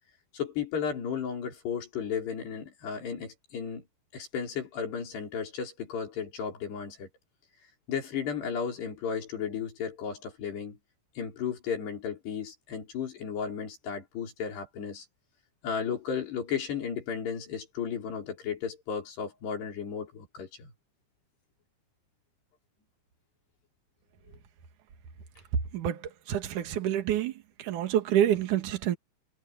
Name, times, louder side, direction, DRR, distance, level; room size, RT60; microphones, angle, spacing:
voice 1, 0.3-3.8 4.1-7.1 7.9-10.8 11.2-15.1 15.6-20.7, left 7 dB, 60° left, 6.8 m, -34 dB
voice 2, 25.7-27.3 27.6-29.0, right 11 dB, 50° right, 2.8 m, -27 dB
omnidirectional pair, 5.6 m